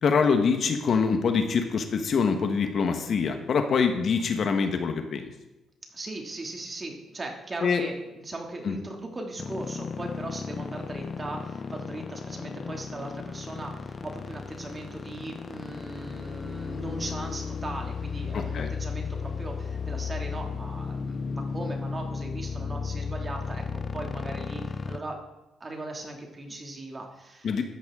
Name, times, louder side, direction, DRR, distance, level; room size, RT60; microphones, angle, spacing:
voice 1, 0.0-5.3 7.6-7.8 8.7-8.8 18.3-18.7 27.4-27.6, left 5 dB, 55° left, 6 dB, 1.3 m, -24 dB
voice 2, 5.9-25.2 25.6-27.6, right 2 dB, 30° right, 2 dB, 2.5 m, -38 dB
sound 1, 9.4-25.0, left 5 dB, 40° left, 0.7 m, -34 dB
13.0 x 10.5 x 3.8 m, 1.0 s
cardioid pair, 90°, 0 cm